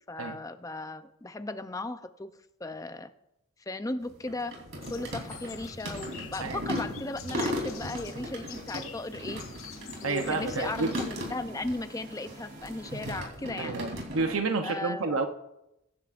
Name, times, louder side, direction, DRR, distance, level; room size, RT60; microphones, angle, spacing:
voice 1, 0.1-3.1 3.7-4.6 4.9-9.4 10.0-13.8 14.6-15.2, left 2 dB, 15° left, 10 dB, 0.5 m, -36 dB
sound 1, 4.0-11.8 12.1-14.4, equal, 60° right, 3.4 m, -37 dB
sound 2, 4.8-11.1, left 9 dB, 70° left, 0.8 m, -47 dB
sound 3, 7.0-13.2, right 1 dB, 40° right, 2.7 m, -51 dB
voice 2, 10.0-10.9 13.6-15.3, right 3 dB, 75° right, 6 dB, 0.8 m, -30 dB
22.5 x 10.0 x 2.5 m, 0.89 s
head